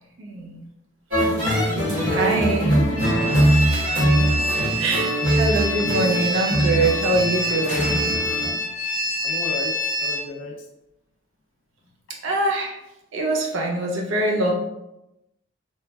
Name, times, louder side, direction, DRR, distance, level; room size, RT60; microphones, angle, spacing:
voice 1, 0.2-0.7 2.1-2.8 3.4-3.6 4.0-4.3 4.8-8.1 12.1-12.8 13.1-14.5, right 2 dB, 80° right, 0 dB, 0.6 m, -24 dB
sound 1, 1.1-8.5, right 1 dB, 45° right, 1.0 m, -22 dB
voice 2, 1.5-2.8 9.2-10.7 11.8-11.9, left 3 dB, 70° left, 2 dB, 0.4 m, -33 dB
sound 2, 3.0-10.2, equal, 5° right, 0.6 m, -26 dB
Slam, 3.3-4.3 5.8-6.3 7.6-8.6, equal, 20° left, 0.9 m, -36 dB
3.1 x 2.2 x 2.2 m, 0.90 s
head